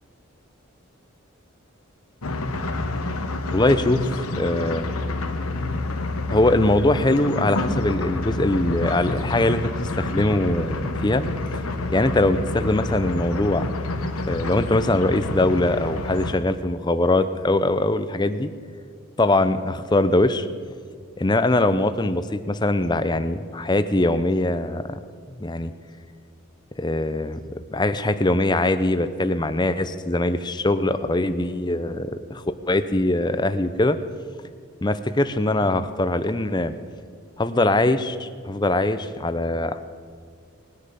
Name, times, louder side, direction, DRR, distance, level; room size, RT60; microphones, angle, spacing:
sound 1, 2.2-16.3, left 2 dB, 90° left, 1.3 m, -28 dB
voice 1, 3.5-4.9 6.3-9.7 10.0-11.2 11.9-13.7 14.3-18.5 19.2-20.5 21.2-25.0 25.4-25.7 26.8-34.0 34.8-36.7 37.4-39.8, left 2 dB, 20° left, 11 dB, 0.6 m, -22 dB
19.5 x 9.9 x 6.9 m, 2.1 s
head